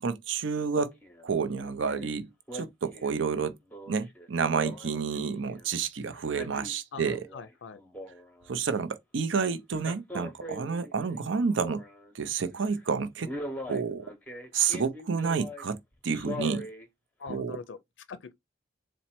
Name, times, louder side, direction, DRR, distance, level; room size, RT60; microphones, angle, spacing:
voice 1, 0.0-0.9 1.2-3.6 3.9-7.2 8.5-11.8 12.1-13.3 13.6-14.1 14.5-16.7 17.3-17.6, right 5 dB, 75° right, 0.5 m, -29 dB
Male speech man speaking, 1.0-1.3 1.6-2.1 2.5-5.7 6.1-7.5 7.8-8.6 9.7-12.1 12.6-12.8 13.2-15.6 16.1-16.9 17.3-17.4, left 1 dB, 10° left, 0.7 m, -41 dB
voice 2, 6.9-7.8 17.2-17.8 18.1-18.3, left 5 dB, 70° left, 0.4 m, -42 dB
4.2 x 2.1 x 4.2 m
head